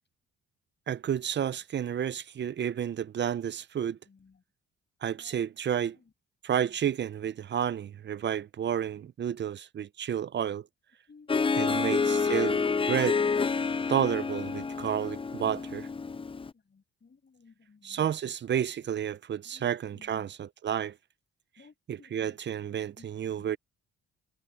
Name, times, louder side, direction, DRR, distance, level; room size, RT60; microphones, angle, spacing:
voice 1, 0.9-4.0 5.0-6.0 6.4-10.7 11.5-12.6 12.9-13.2 13.9-15.9 17.8-20.9 21.9-23.6, right 9 dB, 40° right, 0.5 m, -31 dB
voice 2, 4.1-4.4 5.2-5.4 6.0-6.1 6.6-6.7 11.1-11.8 16.7-18.1 19.4-20.3 21.6-22.4 23.0-23.1 23.3-23.4, left 5 dB, 35° left, 6.5 m, -58 dB
Harp, 11.3-16.5, left 5 dB, 20° left, 0.6 m, -28 dB
cardioid pair, 90°, 30 cm